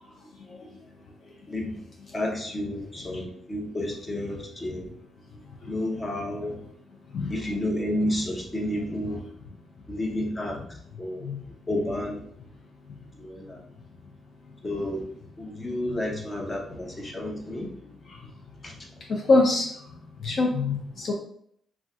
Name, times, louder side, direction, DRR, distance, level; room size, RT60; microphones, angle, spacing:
voice 1, 2.1-4.9 5.7-6.6 7.3-9.2 9.9-10.6 11.0-11.3 11.7-12.2 13.2-13.6 14.6-15.0 15.4-17.7 18.6-18.7, left 1 dB, 30° left, 0 dB, 0.8 m, -30 dB
voice 2, 19.1-19.7 20.2-21.1, left 3 dB, 60° left, 0 dB, 0.5 m, -24 dB
2.5 x 2.4 x 3.4 m, 0.67 s
cardioid pair, 70°, 0 cm